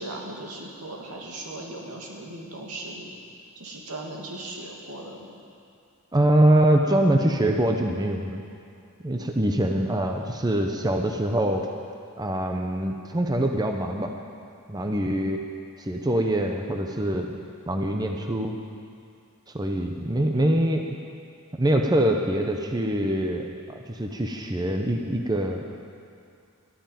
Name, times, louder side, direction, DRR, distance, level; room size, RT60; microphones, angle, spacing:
voice 1, 0.0-3.1 3.6-5.3, right 2 dB, 85° right, -1 dB, 2.5 m, -38 dB
voice 2, 6.1-8.4 9.0-11.7 12.2-14.1 14.7-15.4 15.8-17.3 17.7-18.6 19.5-20.9 21.6-25.6, right 1 dB, 20° right, 3 dB, 0.8 m, -24 dB
12.5 x 9.7 x 9.2 m, 2.5 s
head